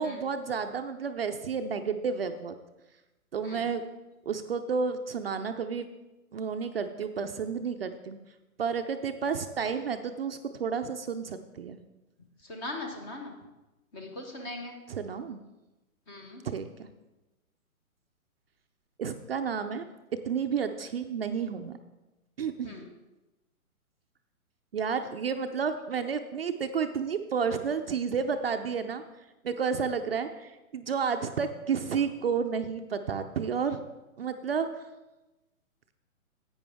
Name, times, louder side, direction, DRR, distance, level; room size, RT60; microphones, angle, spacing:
voice 1, 0.0-2.5 3.3-3.8 4.3-5.9 6.3-8.2 8.6-11.8 14.9-15.4 16.4-16.9 19.0-19.8 20.1-21.8 22.4-22.8 24.7-29.0 29.4-33.8 34.2-34.7, right 6 dB, 45° right, 7 dB, 0.5 m, -31 dB
voice 2, 12.5-13.3 13.9-14.8 16.1-16.4 22.6-22.9, left 2 dB, 15° left, 3 dB, 0.7 m, -39 dB
10.5 x 8.6 x 3.5 m, 1.0 s
hypercardioid pair, 140°, 43 cm